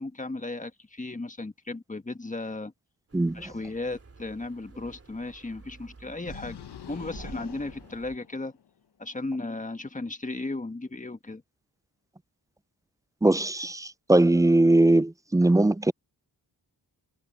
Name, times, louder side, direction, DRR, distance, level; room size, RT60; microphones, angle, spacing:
voice 1, 0.0-2.7 3.3-6.6 6.9-8.5 9.0-11.4, left 2 dB, 20° left, 1.6 m, -35 dB
sound 1, 3.1-8.2, right 3 dB, 35° right, 2.6 m, -49 dB
sound 2, 6.2-8.7, left 9 dB, 90° left, 1.2 m, -45 dB
voice 2, 13.2-15.9, right 2 dB, 10° right, 0.3 m, -21 dB
cardioid pair, 70°, 39 cm